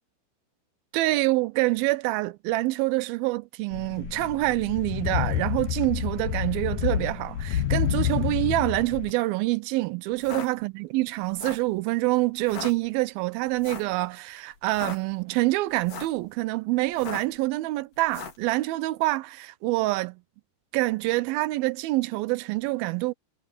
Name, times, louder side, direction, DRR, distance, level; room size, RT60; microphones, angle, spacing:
voice 1, 0.9-20.2 20.7-23.1, right 19 dB, 80° right, 2.3 m, -26 dB
sound 1, 3.7-9.1, left 10 dB, 75° left, 1.6 m, -28 dB
sound 2, 10.1-10.5 11.2-11.7 12.4-12.7 13.6-13.9 14.6-15.0 15.7-16.2 16.9-17.4 18.1-18.4, left 6 dB, 55° left, 4.1 m, -37 dB
omnidirectional pair, 4.6 m